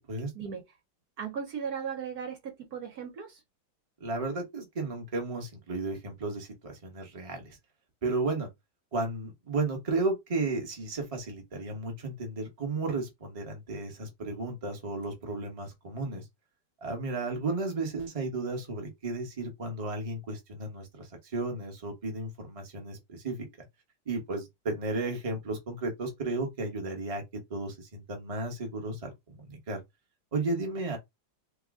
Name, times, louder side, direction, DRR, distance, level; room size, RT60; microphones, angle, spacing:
voice 1, 1.2-3.4, right 7 dB, 65° right, 1.3 m, -37 dB
voice 2, 4.0-7.5 8.0-8.5 8.9-16.2 16.8-23.5 24.1-27.2 27.5-29.8 30.3-31.0, right 3 dB, 25° right, 0.9 m, -33 dB
3.0 x 2.3 x 3.6 m
omnidirectional pair, 1.9 m